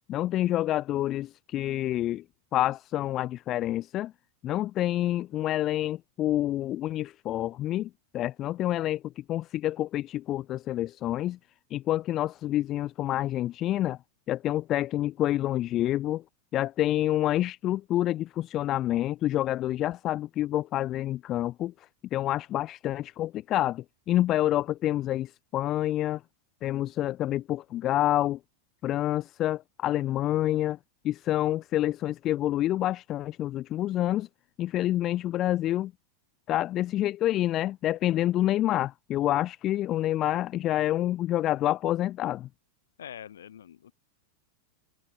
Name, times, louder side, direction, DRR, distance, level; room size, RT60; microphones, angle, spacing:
voice 1, 0.1-2.2 2.5-4.1 4.4-11.4 11.7-14.0 14.3-16.2 16.5-26.2 26.6-28.4 28.8-30.8 31.0-34.3 34.6-35.9 36.5-42.5, left 13 dB, 35° left, 0.5 m, -28 dB
voice 2, 30.2-30.6 43.0-43.9, left 9 dB, 65° left, 3.5 m, -45 dB
figure-of-eight pair, 90°, 0 cm